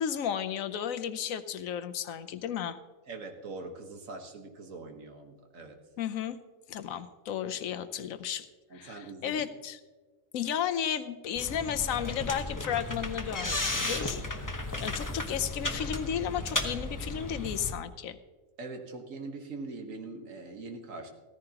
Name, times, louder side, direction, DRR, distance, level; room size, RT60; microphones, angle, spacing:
voice 1, 0.0-2.8 6.0-6.4 6.7-8.5 8.7-9.8 10.3-18.2, left 9 dB, 85° left, 10 dB, 1.1 m, -33 dB
voice 2, 3.1-5.8 8.7-9.4 18.6-21.1, right 3 dB, 75° right, 4 dB, 1.7 m, -42 dB
sound 1, 11.3-17.7, left 2 dB, 15° left, 0.9 m, -34 dB
15.5 x 14.5 x 2.9 m, 1.3 s
omnidirectional pair, 1.4 m